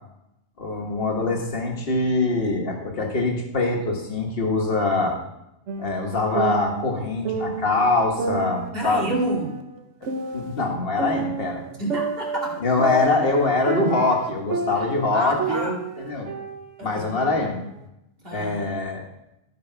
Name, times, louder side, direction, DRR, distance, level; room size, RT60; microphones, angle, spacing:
voice 1, 0.6-5.2 5.8-9.1 10.0-11.6 12.6-16.3 16.8-17.6 18.3-19.0, left 2 dB, 55° left, 1 dB, 1.6 m, -24 dB
sound 1, 5.7-7.8 8.2-10.6 11.0-15.1 15.4-17.4, right 3 dB, 85° right, 1.2 m, -30 dB
voice 2, 8.7-9.6 11.7-12.6 14.8-14.9 15.1-15.7 16.8-17.0 18.2-18.6, equal, 55° right, -3 dB, 2.7 m, -29 dB
14.0 x 5.1 x 4.5 m, 0.86 s
omnidirectional pair, 1.2 m